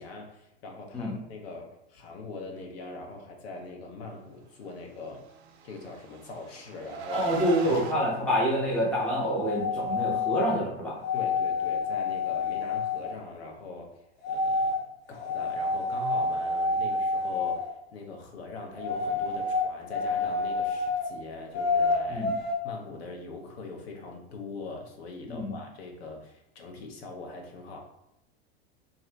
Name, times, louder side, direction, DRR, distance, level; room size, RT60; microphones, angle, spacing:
voice 1, 0.0-5.2 5.6-7.2 7.6-8.1 11.1-14.0 14.3-14.8 15.1-22.3 22.6-27.8, left 3 dB, 75° left, 2 dB, 0.9 m, -42 dB
Car, 5.5-8.0, right 6 dB, 80° right, 0.6 m, -37 dB
voice 2, 7.1-11.0 22.1-22.3 25.3-25.6, equal, 5° left, -5 dB, 0.4 m, -27 dB
sound 1, 9.4-10.5 11.0-13.1 14.2-14.8 15.2-17.7 18.8-21.1 21.5-22.5, left 3 dB, 50° left, 1.1 m, -28 dB
2.7 x 2.5 x 3.3 m, 0.87 s
supercardioid pair, 155°, 32 cm